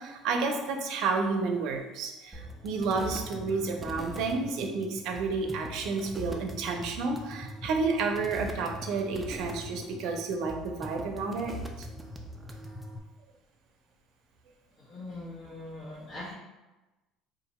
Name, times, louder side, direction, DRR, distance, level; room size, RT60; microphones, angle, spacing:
voice 1, 0.0-11.5, right 4 dB, 60° right, 3 dB, 0.5 m, -31 dB
sound 1, 2.3-13.0, equal, 5° right, 0.4 m, -42 dB
voice 2, 14.8-16.3, left 2 dB, 55° left, -10 dB, 1.2 m, -41 dB
2.8 x 2.5 x 4.2 m, 1.1 s
cardioid pair, 145°, 0 cm